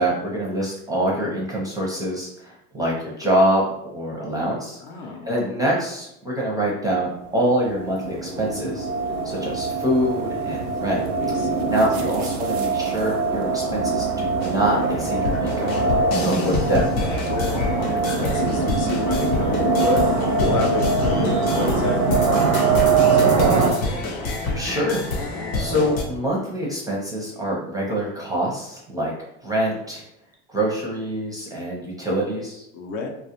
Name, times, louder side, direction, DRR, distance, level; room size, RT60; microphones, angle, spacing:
voice 1, 0.0-8.9 9.2-11.0 11.3-11.4 11.7-15.7 16.1-16.8 24.5-25.0 25.5-29.1 29.4-30.0 30.5-32.6, right 1 dB, 10° right, -4 dB, 0.5 m, -25 dB
voice 2, 4.8-5.3 11.2-11.7 17.1-23.9 32.7-33.1, left 2 dB, 55° left, 3 dB, 0.6 m, -31 dB
sound 1, 7.5-23.7, right 3 dB, 85° right, 0.6 m, -22 dB
sound 2, 14.4-26.0, left 2 dB, 85° left, 0.8 m, -28 dB
2.3 x 2.1 x 2.9 m, 0.79 s
hypercardioid pair, 100°, 42 cm